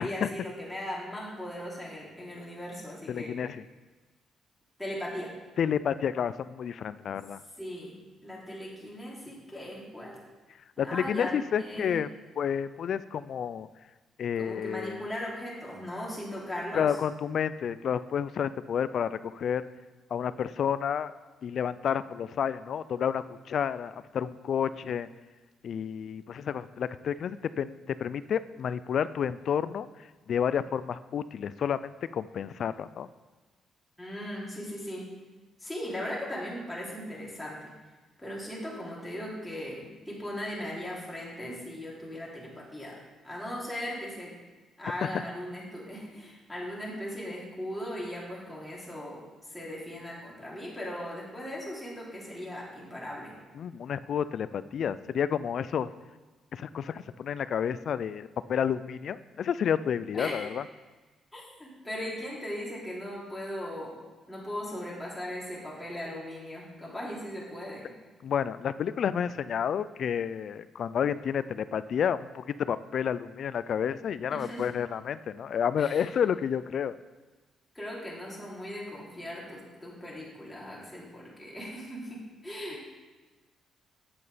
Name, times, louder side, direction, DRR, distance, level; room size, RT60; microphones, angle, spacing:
voice 1, 0.0-3.3 4.8-5.3 7.6-10.2 10.8-12.0 14.4-17.0 34.0-35.1 35.6-37.7 38.2-44.3 44.8-53.3 60.1-60.4 61.3-64.0 64.3-67.9 74.3-74.7 75.8-76.1 77.7-82.9, equal, 10° left, -5 dB, 3.2 m, -38 dB
voice 2, 3.1-3.6 5.6-7.4 10.8-12.1 12.4-13.7 14.2-15.0 16.7-19.7 20.1-21.1 21.4-25.1 25.6-29.9 30.3-33.1 45.0-45.2 53.6-55.9 56.5-60.6 68.2-76.9, left 8 dB, 60° left, 15 dB, 0.3 m, -30 dB
8.9 x 6.8 x 5.0 m, 1.2 s
cardioid pair, 90°, 0 cm